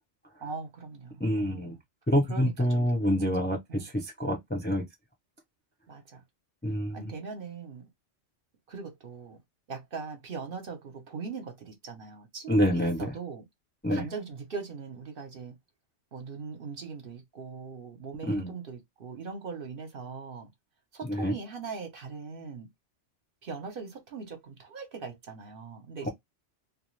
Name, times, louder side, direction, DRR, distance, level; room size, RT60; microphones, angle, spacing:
voice 1, 0.4-1.8 2.3-3.2 3.7-3.9 5.9-6.2 6.9-7.9 8.7-9.4 9.7-13.4 13.9-15.5 16.1-20.5 20.9-22.7 23.4-26.1, right 5 dB, 50° right, 0.9 m, -40 dB
voice 2, 1.2-1.8 2.1-4.8 6.6-7.1 12.5-13.1 13.8-14.1 18.3-18.5 21.0-21.3, equal, 10° left, 0.5 m, -27 dB
2.4 x 2.3 x 3.1 m
omnidirectional pair, 1.2 m